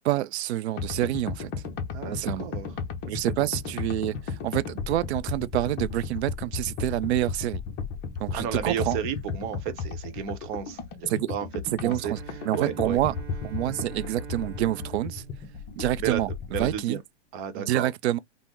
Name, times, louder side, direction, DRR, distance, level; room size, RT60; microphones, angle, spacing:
voice 1, 0.0-1.5 2.1-2.5 3.1-7.6 8.2-9.0 11.1-11.3 11.7-13.1 13.4-15.2 15.8-16.3 16.6-17.0 17.6-18.2, right 14 dB, 65° right, 0.5 m, -27 dB
sound 1, 0.8-16.8, left 5 dB, 30° left, 0.7 m, -35 dB
voice 2, 1.9-2.7 8.3-11.5 11.8-12.1 12.5-13.0 16.0-16.2 16.5-17.0 17.3-17.9, right 9 dB, 45° right, 0.9 m, -32 dB
Bowed string instrument, 11.8-16.4, right 8 dB, 85° right, 0.9 m, -44 dB
3.4 x 2.1 x 2.9 m
hypercardioid pair, 120°, 36 cm